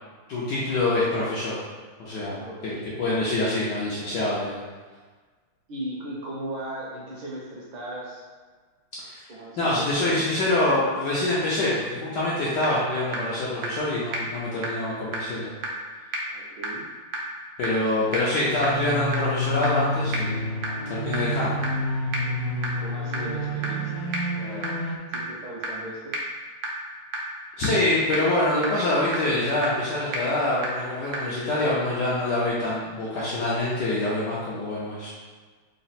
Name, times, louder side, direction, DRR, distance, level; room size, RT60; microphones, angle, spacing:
voice 1, 0.3-1.5 2.0-4.6 9.0-9.2 9.6-15.5 17.6-20.4 20.9-21.6 27.6-35.1, left 2 dB, 70° left, -7 dB, 1.0 m, -25 dB
voice 2, 2.4-2.9 5.7-8.2 9.3-10.3 16.3-16.8 22.6-24.8 25.1-26.1, right 1 dB, 70° right, -4 dB, 1.3 m, -37 dB
sound 1, 12.2-12.3 12.6-12.7 13.1-13.2 13.6-13.7 14.1-14.2 14.6-14.7 15.1-15.2 15.6-15.7 16.1-16.2 16.6-16.7 17.1-17.2 17.6-17.7 18.1-18.2 18.6-18.7 19.1-19.2 19.6-19.7 20.1-20.2 20.6-20.7 21.1-21.2 21.6-21.7 22.1-22.2 22.6-22.7 23.1-23.2 23.6-23.7 24.1-24.2 24.6-24.7 25.1-25.2 25.6-25.7 26.1-26.2 26.6-26.7 27.1-27.2 27.6-27.7 28.1-28.2 28.6-28.7 29.1-29.2 29.6-29.7 30.1-30.2 30.6-30.7 31.1-31.2, right 3 dB, 90° right, 1.6 m, -29 dB
sound 2, 18.4-25.0, left 1 dB, 85° left, 1.5 m, -29 dB
4.0 x 2.0 x 4.0 m, 1.4 s
omnidirectional pair, 2.4 m